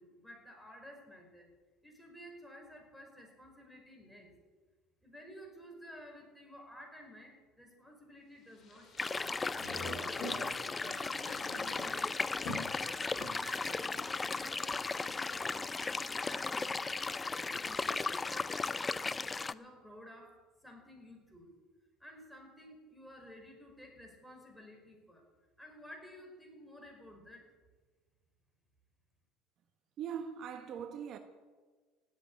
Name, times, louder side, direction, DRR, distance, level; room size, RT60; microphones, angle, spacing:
voice 1, 0.0-1.5 1.8-4.3 5.0-9.3 9.8-12.2 12.8-16.8 17.3-18.8 19.5-21.5 22.0-25.3 25.6-27.4, equal, ahead, 5.0 m, -53 dB
sound 1, 8.6-14.7, left 1 dB, 45° left, 4.7 m, -46 dB
sound 2, 9.0-19.5, left 4 dB, 20° left, 0.5 m, -36 dB
voice 2, 30.0-31.2, right 8 dB, 55° right, 1.2 m, -41 dB
16.5 x 8.1 x 9.9 m
supercardioid pair, 100°, 0 cm